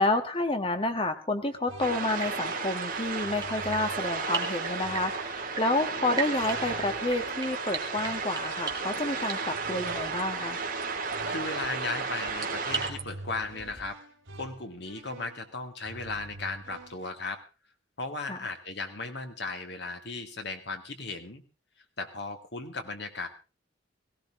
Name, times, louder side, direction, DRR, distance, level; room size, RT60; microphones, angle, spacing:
voice 1, 0.0-10.6 18.3-18.4, left 2 dB, 30° left, 7 dB, 1.5 m, -29 dB
sound 1, 1.4-17.1, right 2 dB, 80° right, 2.3 m, -48 dB
sound 2, 1.8-12.9, right 4 dB, 45° right, 2.7 m, -33 dB
sound 3, 2.1-13.9, right 5 dB, 20° right, 2.3 m, -41 dB
voice 2, 11.3-14.0 14.4-17.4 18.0-21.4 22.0-23.3, left 3 dB, 60° left, 6 dB, 2.1 m, -36 dB
17.5 x 16.5 x 3.7 m, 0.31 s
head